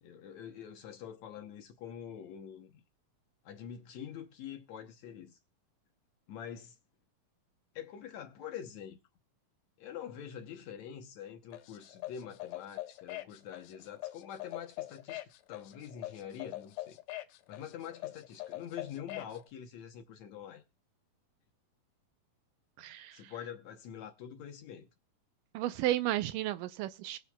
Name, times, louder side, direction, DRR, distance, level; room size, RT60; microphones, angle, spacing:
voice 1, 0.0-2.8 3.5-5.4 6.3-6.8 7.8-9.0 9.8-17.0 17.5-20.6 23.1-24.9, left 9 dB, 70° left, 1.8 m, -45 dB
sound 1, 11.5-19.4, left 17 dB, 90° left, 2.4 m, -43 dB
voice 2, 22.8-23.3 25.5-27.2, right 14 dB, 80° right, 2.2 m, -33 dB
22.0 x 7.4 x 2.2 m
omnidirectional pair, 3.9 m